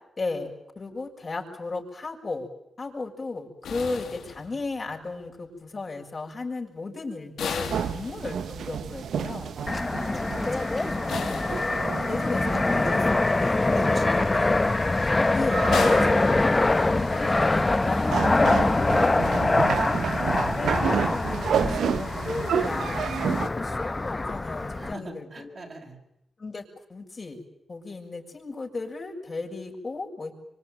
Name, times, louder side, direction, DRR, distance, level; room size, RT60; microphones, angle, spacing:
voice 1, 0.2-2.5 2.8-9.5 11.8-13.8 15.3-19.5 20.5-21.1 21.6-25.5 26.4-27.4 27.7-30.3, left 3 dB, 45° left, 1 dB, 7.0 m, -35 dB
sound 1, 3.6-4.9 7.4-8.7 11.1-12.3 15.7-17.0, left 6 dB, 85° left, 2.7 m, -35 dB
sound 2, 7.6-23.5, right 8 dB, 80° right, 1.1 m, -32 dB
voice 2, 9.6-12.1 12.6-14.6 15.8-16.0 24.7-26.0, right 2 dB, 50° right, 1 dB, 6.6 m, -42 dB
Fixed-wing aircraft airplane, 9.7-24.9, left 2 dB, 30° left, 1.0 m, -24 dB
25.5 x 25.0 x 9.3 m, 0.81 s
supercardioid pair, 50°, 0 cm